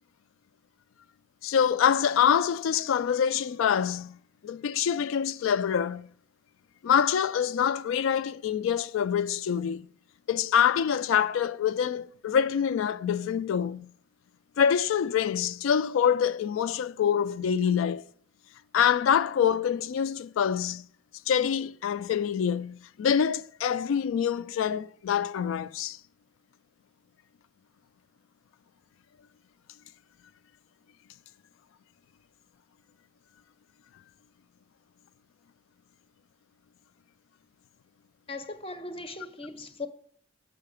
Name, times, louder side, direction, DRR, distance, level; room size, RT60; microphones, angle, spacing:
voice 1, 1.4-4.1 4.4-6.1 6.8-9.9 10.3-13.9 14.6-18.1 18.7-20.8 21.3-26.0, left 8 dB, 80° left, 0.3 m, -25 dB
voice 2, 38.3-39.9, left 2 dB, 30° left, 0.5 m, -38 dB
6.8 x 5.6 x 4.9 m
head